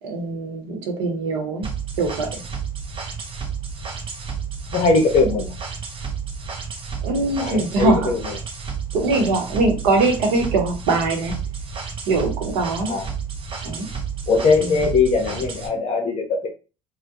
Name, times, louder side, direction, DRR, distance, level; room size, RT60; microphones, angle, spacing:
voice 1, 0.0-1.7 2.0-2.4 7.0-8.1 8.9-11.3 12.1-12.9 13.6-13.9 14.6-14.8, right 3 dB, 65° right, 3 dB, 0.8 m, -22 dB
sound 1, 1.6-15.7, right 6 dB, 30° right, 0.6 m, -31 dB
voice 2, 4.7-5.5 7.4-8.4 12.9-13.1 14.3-16.5, left 4 dB, 35° left, 2 dB, 0.7 m, -20 dB
2.2 x 2.1 x 2.7 m, 0.32 s
hypercardioid pair, 70°, 19 cm